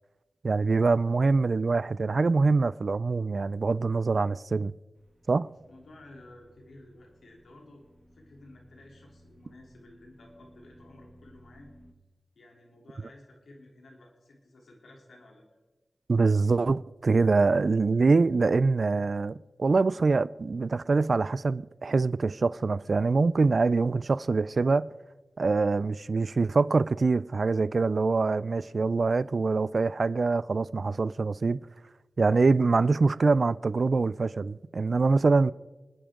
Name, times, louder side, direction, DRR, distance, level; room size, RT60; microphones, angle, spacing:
voice 1, 0.4-4.7 5.3-5.5 16.1-24.9 25.4-31.6 32.2-35.5, right 4 dB, 55° right, 0.4 m, -24 dB
sound 1, 4.9-11.9, equal, 5° right, 1.8 m, -58 dB
voice 2, 5.7-7.8 8.1-11.7 12.3-15.4, left 1 dB, 85° left, 3.2 m, -53 dB
29.0 x 10.5 x 3.7 m
cardioid pair, 60°, 0 cm